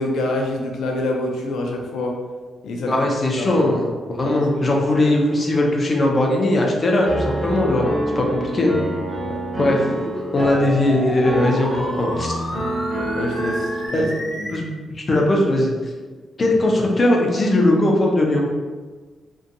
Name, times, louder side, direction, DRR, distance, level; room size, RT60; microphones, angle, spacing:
voice 1, 0.0-2.2 2.6-2.9 3.4-3.7 4.2-4.8 7.8-8.2 9.2-9.4 13.1-14.1 14.4-14.5, left 2 dB, 85° left, 1 dB, 0.4 m, -27 dB
voice 2, 2.9-7.9 8.2-8.3 8.5-8.7 9.6-9.9 10.3-12.3 13.9-14.0 14.5-15.7 16.4-18.4, left 1 dB, 30° left, 0 dB, 0.4 m, -19 dB
Piano, 7.0-13.9, right 1 dB, 30° right, 0.6 m, -27 dB
sound 1, 9.5-14.5, equal, 50° right, 1.0 m, -31 dB
2.6 x 2.2 x 2.5 m, 1.4 s
wide cardioid pair, 160°, 0 cm